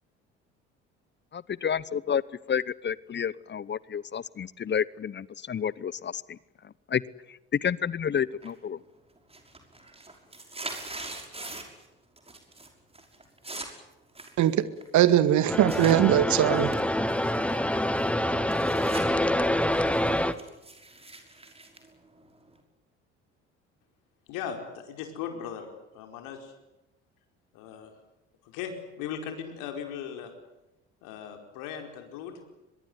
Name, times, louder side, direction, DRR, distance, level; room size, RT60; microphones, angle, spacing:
voice 1, 1.3-2.2 2.5-6.1 6.9-7.0 7.6-8.8, left 8 dB, 30° left, 22 dB, 0.9 m, -30 dB
sound 1, 8.4-8.8 9.2-11.9 12.2-12.7 12.9-16.0 16.5-19.1 19.4-22.6, right 2 dB, 15° right, 5.9 m, -43 dB
voice 2, 14.9-16.7, right 11 dB, 55° right, 14 dB, 2.1 m, -21 dB
sound 2, 15.5-20.3, left 1 dB, 5° left, 2.0 m, -26 dB
voice 3, 24.3-25.7 25.9-26.5 27.5-27.9 28.4-30.3 31.0-32.3, left 8 dB, 65° left, 5 dB, 4.8 m, -38 dB
23.5 x 22.5 x 9.5 m, 0.95 s
figure-of-eight pair, 55°, 35 cm